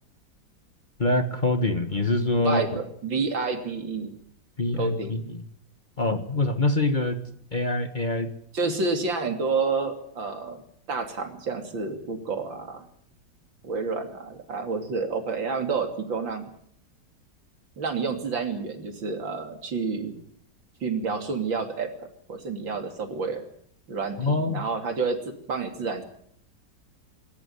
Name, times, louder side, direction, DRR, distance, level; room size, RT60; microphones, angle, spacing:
voice 1, 1.0-2.6 4.6-5.2 6.0-7.2 7.5-8.3 24.2-24.6, left 2 dB, 25° left, 9 dB, 1.5 m, -24 dB
voice 2, 2.3-4.1 4.7-5.2 8.5-12.8 13.6-16.5 17.8-20.2 20.8-21.9 22.3-23.5 23.9-26.0, right 4 dB, 85° right, 6 dB, 3.7 m, -29 dB
26.0 x 13.5 x 9.6 m, 0.66 s
omnidirectional pair, 2.0 m